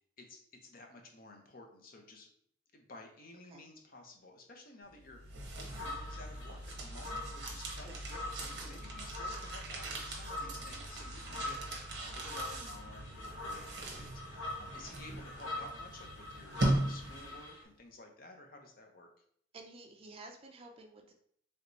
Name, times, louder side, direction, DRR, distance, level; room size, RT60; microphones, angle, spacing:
voice 1, 0.2-2.3 2.7-19.1, left 2 dB, 50° left, 3 dB, 0.6 m, -53 dB
sound 1, 5.0-17.5, right 1 dB, 60° right, 0.7 m, -40 dB
sound 2, 5.7-17.6, left 2 dB, 90° left, 0.9 m, -44 dB
voice 2, 19.5-21.1, right 2 dB, 30° right, 2 dB, 0.4 m, -52 dB
3.2 x 3.0 x 2.6 m, 0.64 s
head